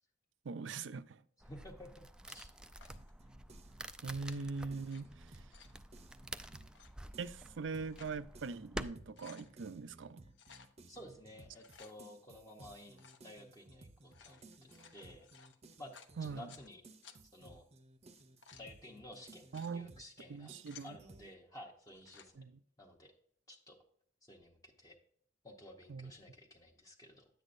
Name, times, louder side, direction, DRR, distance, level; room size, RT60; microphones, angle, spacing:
voice 1, 0.4-1.2 4.0-5.5 7.2-10.2 16.2-16.5 19.5-19.9 20.3-21.0 22.4-22.6 25.9-26.1, right 4 dB, 70° right, 0.5 m, -42 dB
voice 2, 1.4-2.5 10.9-15.3 15.8-15.9 16.2-16.8 17.3-17.6 18.6-20.5 20.8-22.4 22.8-23.1 23.5-23.8 24.2-25.0 25.4-27.3, left 1 dB, 20° left, 0.8 m, -53 dB
sound 1, 1.4-8.9, right 1 dB, 5° right, 0.3 m, -49 dB
sound 2, 2.8-3.1 4.1-5.0 5.3-5.8 6.6-6.9 7.6-8.2 8.6-8.7 9.0-9.5 10.3-10.7 11.4-11.9 12.9-13.3 14.0-16.7 17.0-17.2 18.1-18.7 19.3-19.7 20.3-20.9 21.8-22.3, left 7 dB, 70° left, 0.8 m, -59 dB
sound 3, 2.9-6.8 7.1-21.3, right 2 dB, 35° right, 0.7 m, -59 dB
10.5 x 8.1 x 2.6 m
head